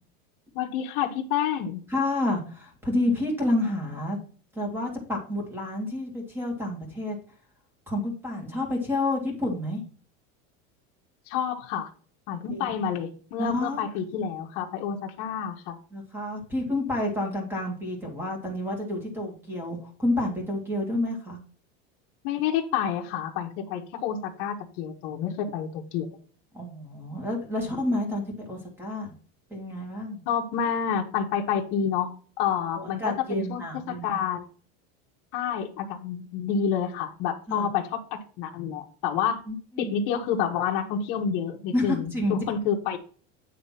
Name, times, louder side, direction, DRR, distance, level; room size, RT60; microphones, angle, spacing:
voice 1, 0.5-1.8 11.3-11.9 12.3-15.8 22.2-26.1 30.3-33.0 33.3-34.5 35.3-38.0 38.4-39.4 39.8-43.0, left 8 dB, 50° left, 1 dB, 1.2 m, -29 dB
voice 2, 1.9-4.2 4.5-7.2 7.9-9.8 12.5-12.7 13.4-13.8 15.9-21.4 26.5-29.1 29.5-30.2 32.8-34.2 37.5-37.7 39.5-40.0 41.7-42.4, left 1 dB, 5° right, 1 dB, 1.9 m, -29 dB
9.2 x 3.4 x 5.7 m, 0.42 s
cardioid pair, 175°, 31 cm